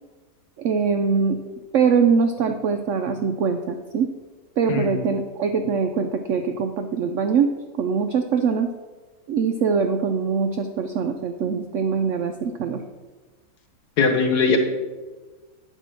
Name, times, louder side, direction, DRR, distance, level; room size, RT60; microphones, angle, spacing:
voice 1, 0.6-1.4 1.7-4.1 4.6-7.5 7.8-8.7 9.3-12.8, right 5 dB, 75° right, 6 dB, 0.7 m, -22 dB
voice 2, 14.0-14.6, left 5 dB, 70° left, 4 dB, 1.6 m, -20 dB
8.9 x 4.5 x 6.2 m, 1.3 s
omnidirectional pair, 1.8 m